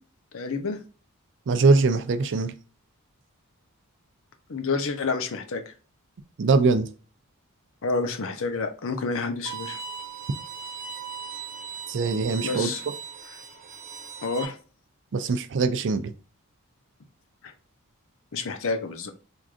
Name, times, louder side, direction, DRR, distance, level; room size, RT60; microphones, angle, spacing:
voice 1, 0.3-0.8 4.5-5.7 7.8-9.8 12.4-12.8 14.2-14.6 18.3-19.1, left 4 dB, 65° left, 0.6 m, -29 dB
voice 2, 1.5-2.5 6.4-6.9 11.9-12.7 15.1-16.1, right 4 dB, 55° right, 0.5 m, -22 dB
Bowed string instrument, 9.4-14.4, right 6 dB, 40° right, 1.1 m, -38 dB
4.6 x 2.5 x 2.4 m
head